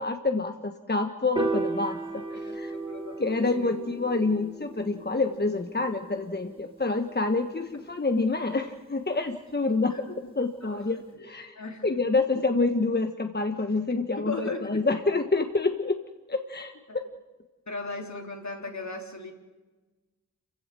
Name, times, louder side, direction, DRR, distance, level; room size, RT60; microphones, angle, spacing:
voice 1, 0.0-2.7 3.2-11.5 11.8-16.0 16.3-17.0, left 3 dB, 35° left, 6 dB, 1.4 m, -27 dB
Piano, 1.4-7.7, right 2 dB, 15° right, 3.7 m, -36 dB
voice 2, 2.9-3.8 9.9-10.1 10.6-10.8 11.1-11.3 11.6-11.8 12.4-12.5 14.1-14.8 16.9-17.0 17.7-19.3, left 3 dB, 65° left, 3 dB, 3.5 m, -37 dB
27.0 x 16.0 x 7.7 m, 1.3 s
cardioid pair, 40°, 30 cm